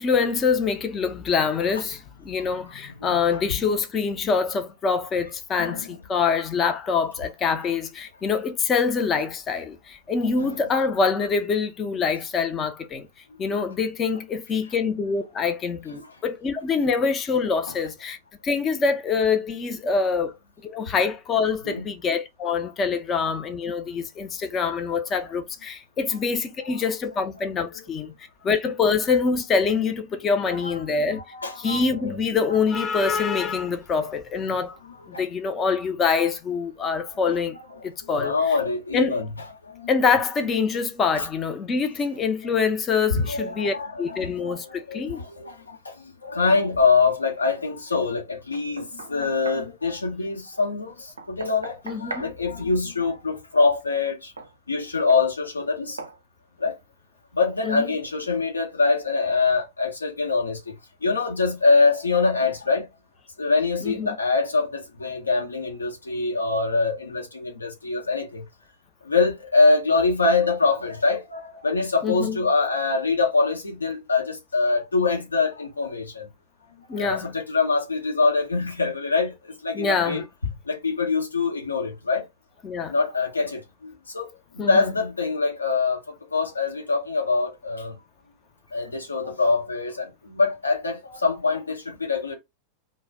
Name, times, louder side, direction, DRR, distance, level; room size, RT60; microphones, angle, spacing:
voice 1, 0.0-13.1 13.4-18.2 18.4-20.3 20.6-28.1 28.4-31.2 31.6-34.8 35.1-37.5 37.8-38.3 38.9-39.2 39.9-45.2 51.9-52.2 57.6-57.9 63.8-64.2 72.0-72.4 76.9-77.3 79.7-80.2 82.6-82.9 84.6-84.9, left 5 dB, 25° left, 0.5 m, -25 dB
voice 2, 3.0-3.4 5.6-6.0 10.4-10.6 16.0-16.1 17.7-17.8 21.6-21.9 27.7-27.8 30.5-30.7 31.1-31.8 32.5-32.6 34.8-35.2 37.0-37.2 37.7-39.3 39.7-39.9 43.1-45.9 46.2-54.3 54.7-56.0 56.6-56.7 57.3-60.7 61.0-62.9 63.4-68.4 69.0-76.3 77.0-79.3 79.6-80.2 80.7-82.2 82.9-84.3 84.5-88.0 88.7-92.4, left 4 dB, 80° left, 0.8 m, -24 dB
Knock, 48.5-49.7 51.2-52.3 54.4-54.5 55.1-55.3 56.0-56.2, right 3 dB, 75° right, 0.4 m, -38 dB
2.3 x 2.0 x 3.3 m
figure-of-eight pair, 90°, 0 cm